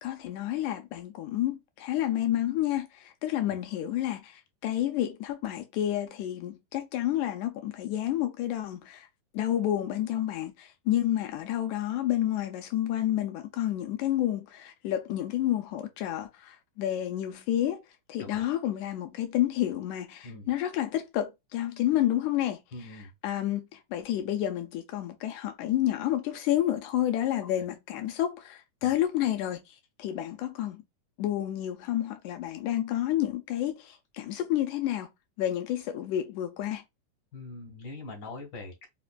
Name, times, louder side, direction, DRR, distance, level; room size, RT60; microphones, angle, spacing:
voice 1, 0.0-9.1 9.3-17.8 18.1-22.6 23.2-29.6 30.0-30.8 31.2-36.8, left 12 dB, 80° left, 1.8 m, -30 dB
voice 2, 22.7-23.1 28.8-28.9 37.3-38.9, left 3 dB, 60° left, 1.3 m, -42 dB
5.0 x 2.5 x 2.3 m
omnidirectional pair, 3.8 m